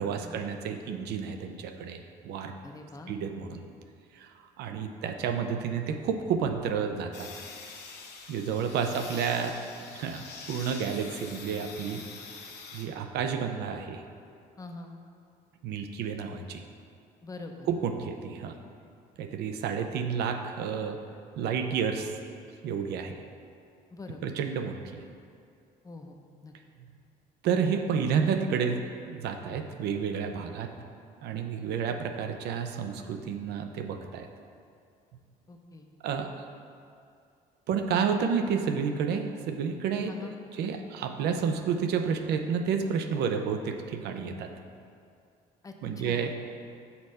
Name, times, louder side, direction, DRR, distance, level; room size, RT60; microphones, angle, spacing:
voice 1, 0.0-2.5 3.1-3.7 4.1-4.3 4.6-7.3 8.3-9.6 9.9-12.0 12.7-14.0 15.6-16.6 17.7-18.6 19.2-21.0 21.4-22.1 22.6-23.2 24.2-25.0 27.4-30.7 31.2-34.3 36.0-36.3 37.7-40.1 40.5-44.5 45.8-46.3, right 6 dB, 80° right, 6 dB, 0.6 m, -30 dB
voice 2, 2.6-3.2 8.9-9.0 14.6-15.0 17.2-17.7 23.9-24.3 25.8-26.2 26.4-26.5 35.5-35.9 40.1-40.4 45.6-46.3, left 3 dB, 20° left, 4 dB, 0.7 m, -44 dB
sound 1, 7.1-12.8, left 4 dB, 80° left, 1.0 m, -45 dB
6.9 x 4.2 x 6.5 m, 2.4 s
cardioid pair, 110°, 17 cm